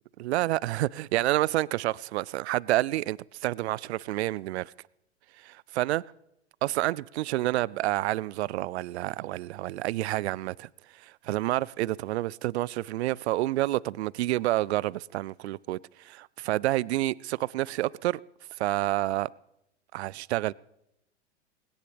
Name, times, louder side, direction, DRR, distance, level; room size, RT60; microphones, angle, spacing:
voice 1, 0.2-4.7 5.4-6.0 6.6-10.7 11.0-18.2 18.6-19.3 19.9-20.5, right 16 dB, 65° right, 0.5 m, -29 dB
20.0 x 17.0 x 3.4 m
hypercardioid pair, 100°, 35 cm